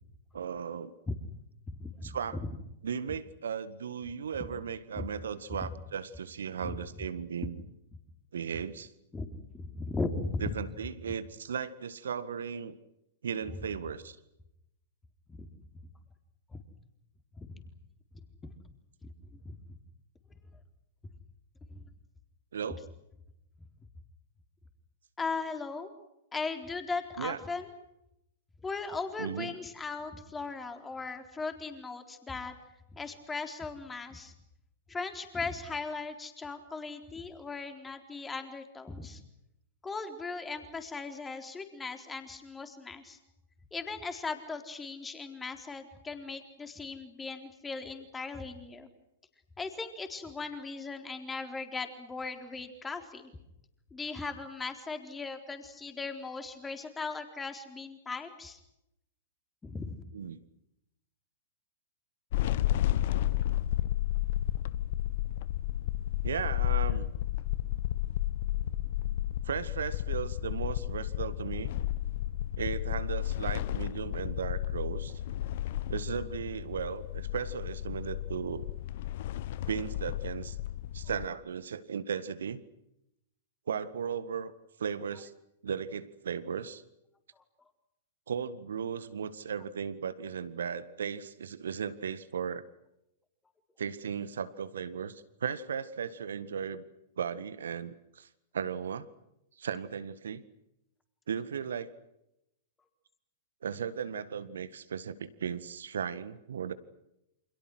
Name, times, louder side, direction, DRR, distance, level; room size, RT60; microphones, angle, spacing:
voice 1, 0.3-0.9 2.0-2.4 2.8-7.6 8.3-8.9 10.4-12.8 13.2-14.2 22.5-22.8 27.2-27.4 29.2-29.6 60.1-60.4 66.2-67.1 69.4-71.7 72.6-75.2 75.9-78.7 79.7-80.6 80.9-82.6 83.7-84.5 84.8-85.3 85.6-86.8 88.3-92.6 93.8-96.8 97.2-98.3 98.5-99.1 99.6-100.4 101.3-101.9 103.6-106.7, right 7 dB, 65° right, 14 dB, 1.8 m, -36 dB
voice 2, 1.7-2.5 4.9-5.1 6.6-6.8 9.1-10.6 15.3-15.5 16.5-16.6 17.4-17.6 18.4-18.5 19.0-19.8 21.7-21.8 25.2-25.9 26.3-27.7 28.6-32.5 32.9-34.3 34.9-39.2 39.8-43.2 43.7-48.9 49.6-53.3 53.9-58.6 59.6-60.0 87.4-87.5, left 4 dB, 10° left, 6 dB, 4.0 m, -38 dB
sound 1, 62.3-81.2, left 13 dB, 50° left, 1.1 m, -32 dB
29.5 x 27.5 x 6.3 m, 0.84 s
figure-of-eight pair, 105°, 0 cm